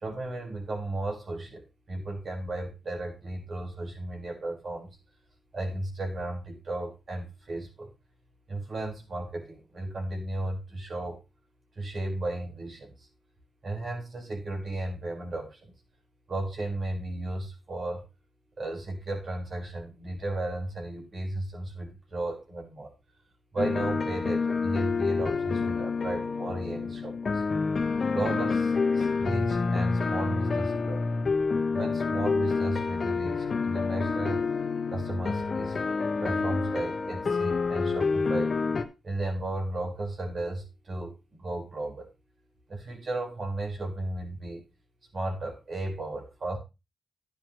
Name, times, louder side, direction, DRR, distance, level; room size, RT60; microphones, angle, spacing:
voice 1, 0.0-1.6 1.9-4.9 5.5-7.9 8.5-11.2 11.8-12.9 13.6-15.7 16.3-18.0 18.6-22.9 23.5-27.4 28.1-31.0 31.7-34.4 34.9-35.9 36.2-38.6 39.0-42.1 42.7-44.6 45.1-46.6, right 2 dB, 50° right, 2 dB, 4.8 m, -34 dB
sound 1, 23.6-38.8, left 4 dB, 50° left, 1.3 m, -28 dB
11.0 x 10.0 x 3.1 m, 0.26 s
cardioid pair, 70°, 0 cm